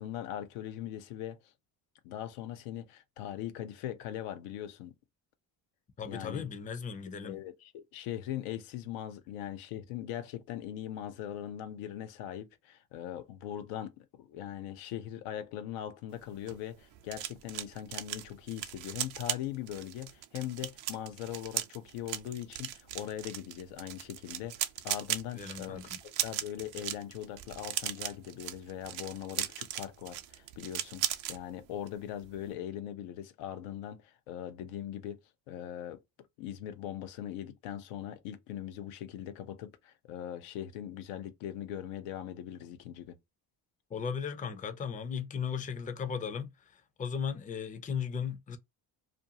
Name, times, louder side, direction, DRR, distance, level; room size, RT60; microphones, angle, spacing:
voice 1, 0.0-1.4 2.0-4.9 6.1-6.5 7.2-25.8 26.2-35.2 35.5-36.0 36.4-43.2, left 11 dB, 85° left, 0.6 m, -40 dB
voice 2, 6.0-7.4 25.3-26.0 43.9-48.6, left 7 dB, 15° left, 0.4 m, -36 dB
sound 1, 16.2-31.4 31.7-32.0 32.2-32.5, right 12 dB, 70° right, 0.6 m, -38 dB
2.5 x 2.3 x 2.7 m
supercardioid pair, 80°, 49 cm